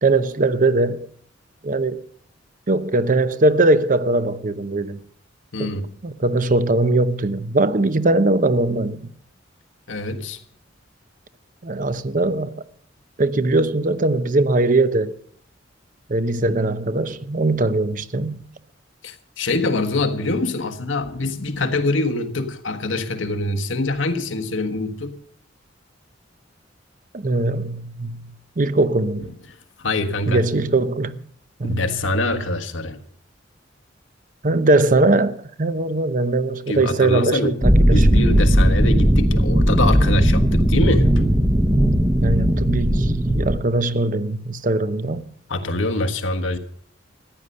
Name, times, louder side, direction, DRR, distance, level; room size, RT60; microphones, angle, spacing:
voice 1, 0.0-1.1 1.6-2.0 2.7-5.0 5.6-5.7 6.0-9.1 11.6-12.5 13.2-15.2 16.1-18.5 27.1-28.3 28.6-29.3 30.3-31.2 31.6-31.9 34.4-38.2 42.2-45.3, right 2 dB, 45° right, 0.8 m, -20 dB
voice 2, 5.5-6.0 9.9-10.4 19.0-25.2 29.8-30.4 31.6-33.0 36.7-37.6 37.9-41.1 45.5-46.6, left 2 dB, 85° left, 1.4 m, -24 dB
sound 1, 37.6-43.6, equal, 15° right, 0.9 m, -17 dB
14.5 x 9.8 x 6.7 m
head